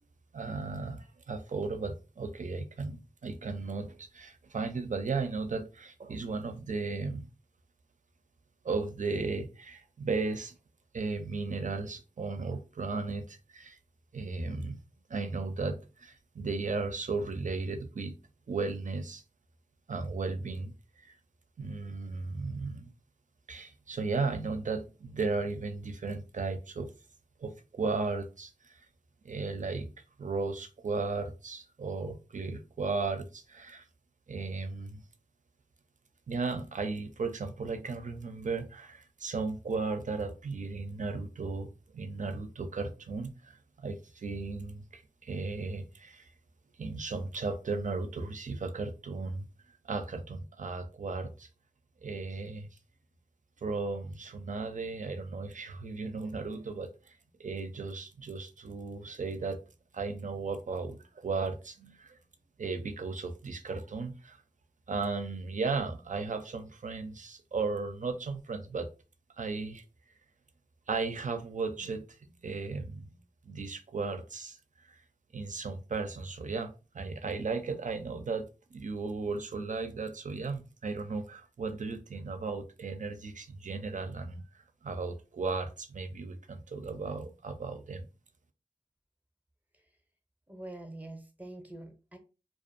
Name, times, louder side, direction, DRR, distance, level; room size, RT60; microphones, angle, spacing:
voice 1, 0.3-7.3 8.6-10.6 10.9-13.8 14.1-14.8 15.1-18.2 18.5-19.2 19.9-21.1 21.6-22.9 23.5-26.9 27.4-28.8 29.2-29.9 30.2-33.8 34.3-35.0 36.3-46.3 46.8-49.5 49.8-51.5 52.0-52.7 53.6-57.1 57.4-59.6 59.9-62.2 62.6-64.4 64.9-68.9 69.4-69.8 70.9-73.2 73.5-74.6 74.8-74.9 75.3-84.4 84.8-88.1, right 4 dB, 60° right, 0.5 m, -35 dB
voice 2, 90.5-92.2, right 1 dB, 10° right, 0.6 m, -45 dB
2.5 x 2.3 x 2.5 m
wide cardioid pair, 45°, 15 cm